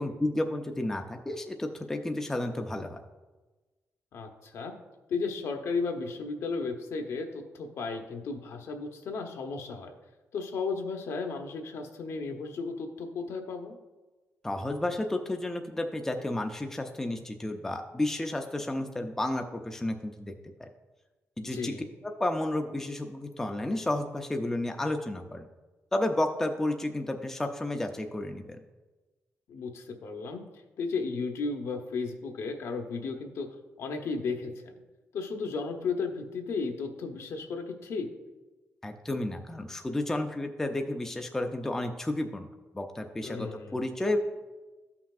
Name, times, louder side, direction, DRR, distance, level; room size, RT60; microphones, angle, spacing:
voice 1, 0.0-3.0 14.4-20.3 20.6-20.7 21.4-21.7 22.2-25.5 25.9-28.6 38.8-42.5 42.7-44.2, left 1 dB, 10° left, 4 dB, 0.4 m, -32 dB
voice 2, 4.1-4.7 5.1-9.9 10.3-13.8 21.4-21.8 29.5-30.5 30.8-33.5 33.8-34.5 35.1-38.1 43.2-43.8, left 4 dB, 70° left, 4 dB, 0.9 m, -34 dB
13.5 x 5.8 x 2.4 m, 1.2 s
wide cardioid pair, 170°, 5 cm